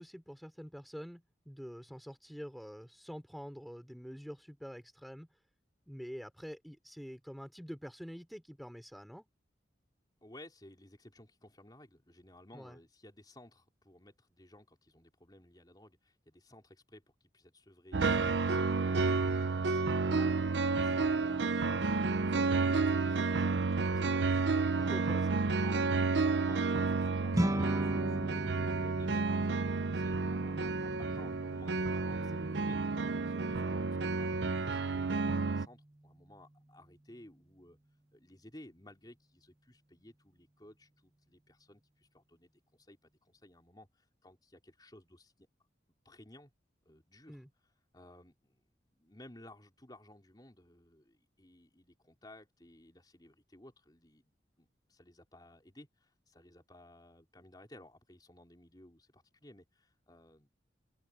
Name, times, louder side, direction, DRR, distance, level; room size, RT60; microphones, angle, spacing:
voice 1, 0.0-5.3 5.9-9.3 12.5-12.8 24.7-25.7 47.3-47.5, equal, ahead, 3.2 m, -46 dB
voice 2, 10.2-17.0 17.3-24.7 25.3-28.4 28.8-32.8 33.1-37.8 38.1-45.3 46.0-46.5 46.9-47.4 47.9-60.5, left 1 dB, 20° left, 4.1 m, -57 dB
sound 1, 17.9-35.7, right 4 dB, 75° right, 0.7 m, -31 dB
sound 2, 27.3-36.8, right 1 dB, 20° right, 0.9 m, -39 dB
open air
head